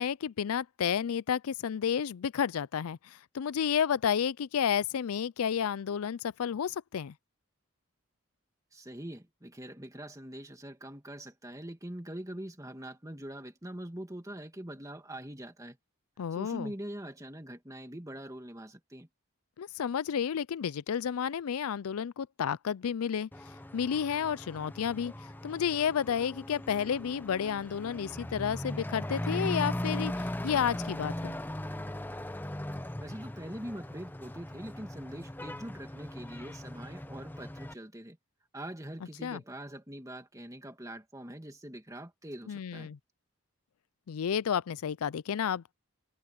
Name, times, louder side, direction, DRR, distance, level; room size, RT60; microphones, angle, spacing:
voice 1, 0.0-7.1 16.2-16.7 19.6-23.3 23.7-25.1 25.4-31.4 39.2-39.4 42.5-43.0 44.1-45.7, left 8 dB, 80° left, 0.4 m, -31 dB
voice 2, 8.7-15.8 16.3-19.1 33.0-38.2 38.5-42.9, right 1 dB, 15° right, 2.1 m, -43 dB
Truck / Accelerating revving vroom, 23.3-37.7, left 1 dB, 10° left, 0.6 m, -39 dB
head